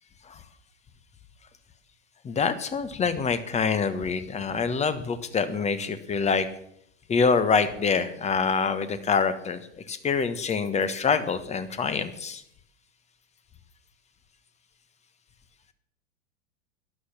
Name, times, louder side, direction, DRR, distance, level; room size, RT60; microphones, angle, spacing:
voice 1, 2.2-6.5 7.1-9.6 9.9-12.4, left 5 dB, 20° left, 12 dB, 1.3 m, -25 dB
13.0 x 11.5 x 7.3 m, 0.72 s
figure-of-eight pair, 95°, 37 cm